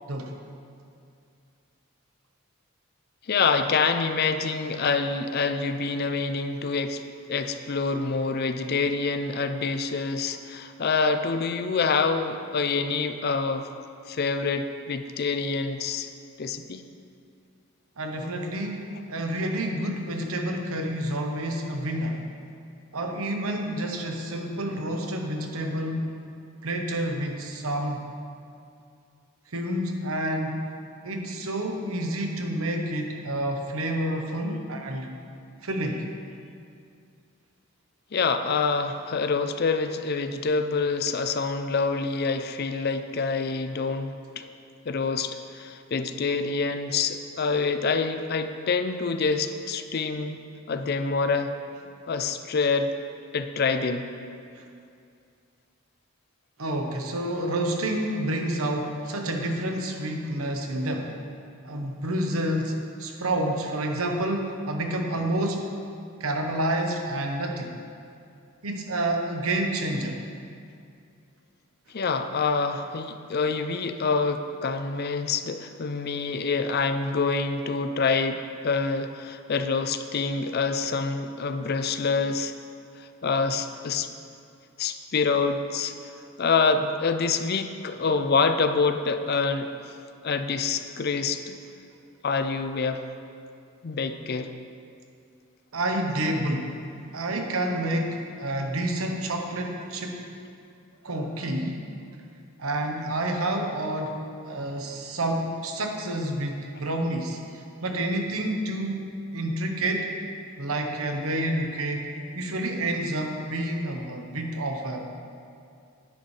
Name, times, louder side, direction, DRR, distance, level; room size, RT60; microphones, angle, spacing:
voice 1, 3.3-7.0 7.3-13.7 14.1-16.1 16.4-16.8 38.1-44.4 44.9-50.4 50.7-51.5 52.1-52.9 53.3-54.1 71.9-82.5 83.0-84.1 84.8-85.9 86.4-89.7 90.2-91.6 92.2-93.0 93.8-94.5, left 4 dB, 45° left, 8 dB, 0.5 m, -26 dB
voice 2, 18.0-22.2 22.9-26.1 26.6-28.1 29.5-30.7 31.0-35.1 35.6-36.1 54.5-54.7 56.6-61.1 61.6-65.7 66.2-67.8 68.6-70.2 95.7-96.8 97.1-100.3 101.0-101.8 102.6-109.1 109.3-110.1 110.6-112.1 112.3-115.1, right 1 dB, 85° right, 3 dB, 1.0 m, -29 dB
10.0 x 9.8 x 3.3 m, 2.4 s
head